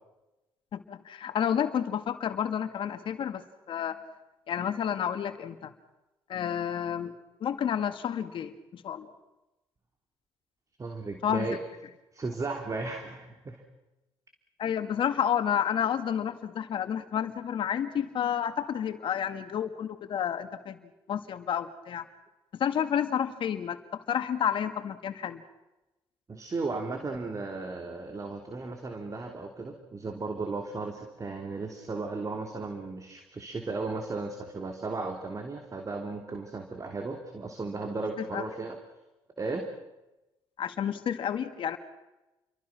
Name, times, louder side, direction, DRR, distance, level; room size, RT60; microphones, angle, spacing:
voice 1, 0.7-4.0 4.5-5.7 6.3-7.1 7.4-9.1 11.2-11.5 14.6-22.0 22.5-25.4 38.3-38.4 40.6-41.8, left 9 dB, 60° left, 9 dB, 2.1 m, -30 dB
voice 2, 10.8-11.6 12.1-13.6 26.3-38.8 39.4-39.7, right 3 dB, 35° right, 4 dB, 3.3 m, -35 dB
29.5 x 23.0 x 6.1 m, 1.0 s
supercardioid pair, 60°, 10 cm